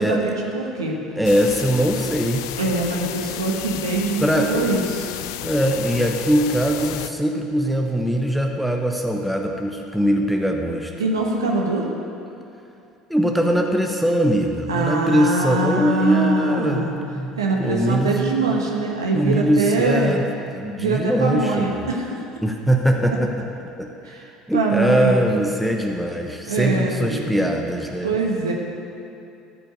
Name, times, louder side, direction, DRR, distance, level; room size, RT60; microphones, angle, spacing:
voice 1, 0.0-1.0 2.6-5.1 11.0-11.9 14.7-16.9 17.4-20.2 20.8-22.2 24.0-24.3 24.5-25.2 26.4-27.5 28.0-28.5, right 3 dB, 85° right, -1 dB, 1.2 m, -23 dB
sound 1, 1.2-7.1, left 12 dB, 70° left, 0.4 m, -32 dB
voice 2, 1.2-2.5 4.2-4.7 5.4-10.9 13.1-16.9 17.2-18.2 19.1-20.2 20.5-21.8 22.4-23.3 23.8-23.9 24.5-28.1, equal, ahead, 2 dB, 1.0 m, -21 dB
14.0 x 5.5 x 8.3 m, 2.7 s
hypercardioid pair, 65°, 2 cm